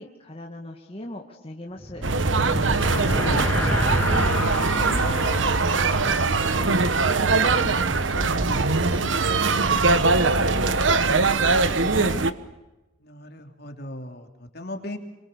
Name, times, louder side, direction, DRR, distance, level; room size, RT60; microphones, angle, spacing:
voice 1, 0.0-2.0 2.3-12.3, left 1 dB, 30° left, 1 dB, 2.2 m, -39 dB
sound 1, 1.7-7.5, left 1 dB, 10° left, 3.1 m, -29 dB
sound 2, 2.0-12.3, right 3 dB, 90° right, 1.2 m, -22 dB
voice 2, 13.0-15.0, left 1 dB, 55° left, 4 dB, 3.3 m, -39 dB
27.5 x 24.5 x 7.0 m, 1.0 s
head